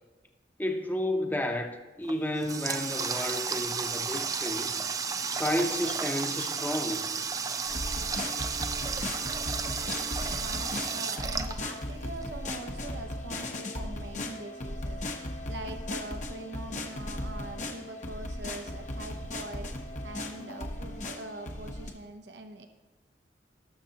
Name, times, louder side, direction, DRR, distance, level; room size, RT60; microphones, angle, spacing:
voice 1, 0.6-4.7 5.3-7.1, left 1 dB, 10° left, 4 dB, 0.8 m, -31 dB
Water tap faucet, 2.0-12.2, right 5 dB, 20° right, 0.4 m, -33 dB
sound 1, 7.7-21.9, left 1 dB, 40° left, 0.9 m, -37 dB
voice 2, 9.9-22.7, right 2 dB, 75° right, 6 dB, 0.7 m, -43 dB
19.0 x 6.6 x 2.9 m, 1.2 s
head